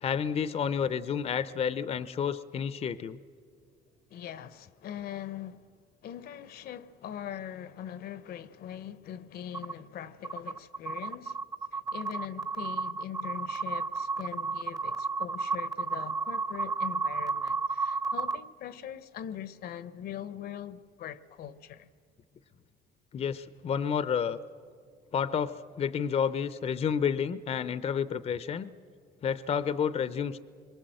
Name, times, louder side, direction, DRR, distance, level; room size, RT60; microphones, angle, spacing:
voice 1, 0.0-3.2 23.1-24.4 25.1-28.7 29.2-30.4, left 7 dB, 40° left, 0.6 m, -30 dB
voice 2, 4.1-5.7 6.0-11.4 11.7-21.9, left 10 dB, 65° left, 0.8 m, -42 dB
sound 1, 9.5-9.7 10.2-18.4, right 4 dB, 20° right, 0.9 m, -32 dB
26.5 x 23.5 x 7.7 m
cardioid pair, 110°, 17 cm